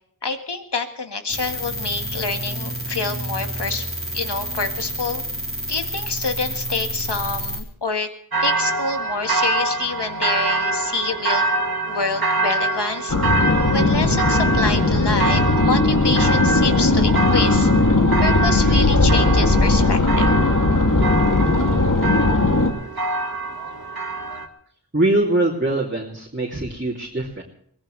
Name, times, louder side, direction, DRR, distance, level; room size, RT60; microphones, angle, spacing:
voice 1, 0.2-3.9 4.1-5.2 5.7-8.1 8.4-11.5 11.8-13.2 13.7-17.7 18.2-20.3, left 3 dB, 85° left, 6 dB, 1.8 m, -27 dB
sound 1, 1.3-7.6, equal, 35° left, 3.9 m, -29 dB
sound 2, 8.3-24.5, right 3 dB, 65° right, 1.9 m, -25 dB
sound 3, 13.1-22.7, left 2 dB, 50° left, 2.7 m, -18 dB
voice 2, 24.9-27.4, right 2 dB, 30° right, -4 dB, 2.8 m, -22 dB
23.0 x 18.0 x 3.3 m, 0.66 s
wide cardioid pair, 60°, 40 cm